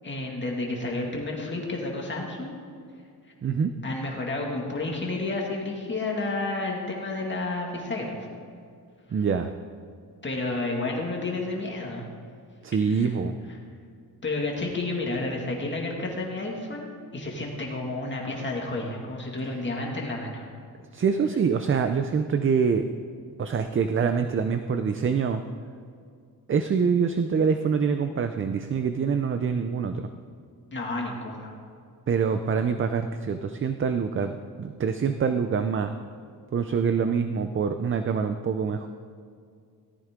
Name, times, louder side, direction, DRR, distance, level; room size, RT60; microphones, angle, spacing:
voice 1, 0.0-2.6 3.8-8.1 10.2-12.1 12.9-13.1 14.2-20.5 30.7-31.5, left 2 dB, 30° left, -1 dB, 2.1 m, -31 dB
voice 2, 3.4-3.7 9.1-9.5 12.6-13.3 20.9-22.9 23.4-25.4 26.5-30.0 32.1-34.3 34.6-35.9 36.5-38.9, right 6 dB, 35° right, 8 dB, 0.5 m, -25 dB
17.5 x 13.5 x 3.7 m, 2.2 s
wide cardioid pair, 150°, 37 cm